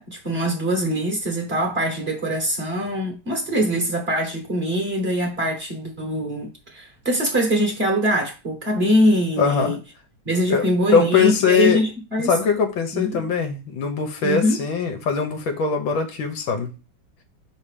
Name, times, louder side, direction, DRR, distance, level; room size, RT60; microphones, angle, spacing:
voice 1, 0.0-9.8 10.2-12.3 12.9-13.2 14.2-14.6, equal, 35° right, 1.5 m, -23 dB
voice 2, 9.4-9.8 10.5-11.8 12.2-16.7, left 6 dB, 75° left, 1.7 m, -21 dB
5.7 x 3.8 x 4.9 m
omnidirectional pair, 2.2 m